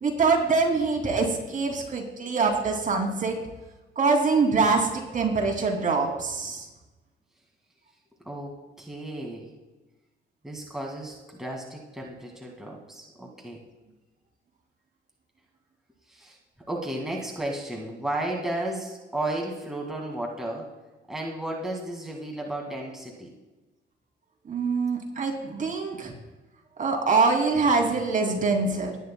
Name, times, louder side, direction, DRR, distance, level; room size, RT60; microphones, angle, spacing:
voice 1, 0.0-3.4 4.0-6.7 24.5-26.1 26.8-29.0, right 4 dB, 40° right, 1 dB, 2.6 m, -24 dB
voice 2, 8.3-9.5 10.4-13.6 16.1-16.4 16.7-20.7 21.1-23.3, right 1 dB, ahead, -1 dB, 2.0 m, -33 dB
19.0 x 9.4 x 2.2 m, 1.1 s
cardioid pair, 90°, 20 cm